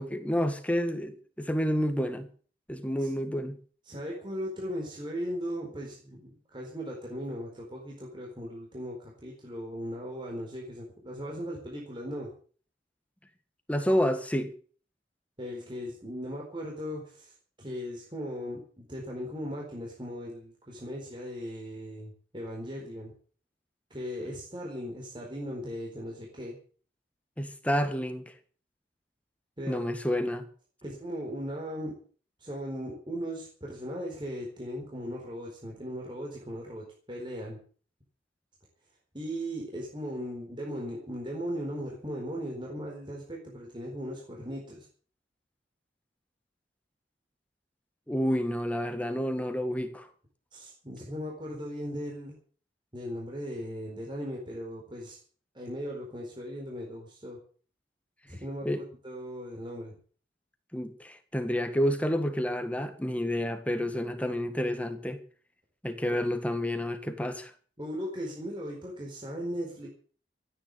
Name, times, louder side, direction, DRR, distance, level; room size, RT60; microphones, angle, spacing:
voice 1, 0.0-2.3 2.7-3.6 13.7-14.5 27.4-28.2 29.7-30.5 48.1-50.1 58.6-58.8 60.7-65.2 65.8-67.5, equal, 10° left, 1.7 m, -29 dB
voice 2, 3.9-12.3 15.4-23.1 23.9-26.6 29.6-29.9 30.8-31.9 32.4-37.6 39.1-44.9 50.5-52.3 52.9-55.2 55.5-57.4 58.2-58.7 59.0-60.0 66.1-66.2 67.8-69.9, equal, 25° right, 4.3 m, -38 dB
14.5 x 9.8 x 8.2 m
head